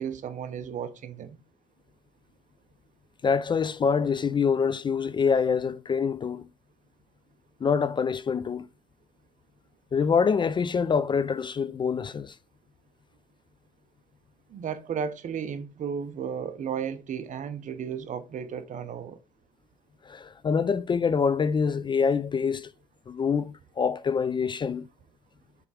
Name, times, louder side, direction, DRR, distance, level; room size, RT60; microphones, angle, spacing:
voice 1, 0.0-1.4 14.5-19.2, right 7 dB, 50° right, 0.9 m, -34 dB
voice 2, 3.2-6.5 7.6-8.7 9.9-12.3 20.1-22.7 23.1-24.9, left 6 dB, 30° left, 0.4 m, -25 dB
6.9 x 3.5 x 4.9 m
cardioid pair, 110°, 17 cm